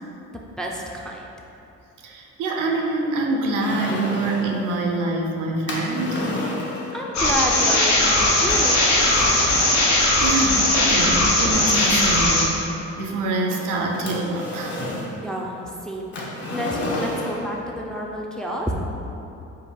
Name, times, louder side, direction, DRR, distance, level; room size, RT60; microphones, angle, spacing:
voice 1, 0.3-1.3 6.9-8.8 15.2-16.1 16.5-18.7, equal, ahead, -2 dB, 0.4 m, -29 dB
voice 2, 2.0-6.4 9.4-9.7 10.2-14.8, right 2 dB, 85° right, 1 dB, 0.6 m, -25 dB
sound 1, 3.6-4.5 5.7-7.0 8.5-9.8 10.8-10.9 11.5-12.4 13.5-15.1 16.1-17.5, left 1 dB, 40° left, 0.8 m, -31 dB
sound 2, 7.1-12.4, left 1 dB, 70° left, 0.8 m, -19 dB
3.7 x 2.4 x 4.3 m, 2.8 s
cardioid pair, 90°, 30 cm